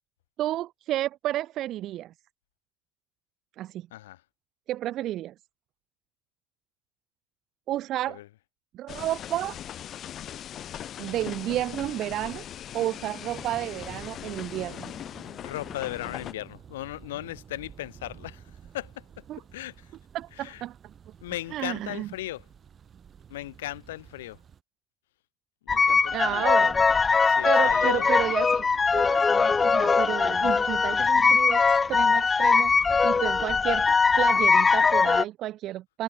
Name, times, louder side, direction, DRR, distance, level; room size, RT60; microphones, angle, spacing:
voice 1, 0.4-2.1 3.6-3.9 4.7-5.3 7.7-8.2 8.7-9.6 11.0-12.4 12.7-14.9 19.3-19.4 20.1-20.8 21.1-21.2 21.5-22.1 26.1-26.8 27.4-33.9 34.2-36.0, right 14 dB, 60° right, 0.5 m, -31 dB
sound 1, 8.9-16.3, left 10 dB, 50° left, 0.9 m, -40 dB
Thunder, 13.3-24.6, right 8 dB, 40° right, 5.3 m, -51 dB
voice 2, 15.4-18.4 18.7-19.2 19.5-19.9 20.4-20.6 21.2-22.5 23.3-24.4 25.7-26.6 27.3-28.1, left 15 dB, 90° left, 0.6 m, -37 dB
sound 2, 25.7-35.2, left 5 dB, 30° left, 0.5 m, -21 dB
hypercardioid pair, 75°, 0 cm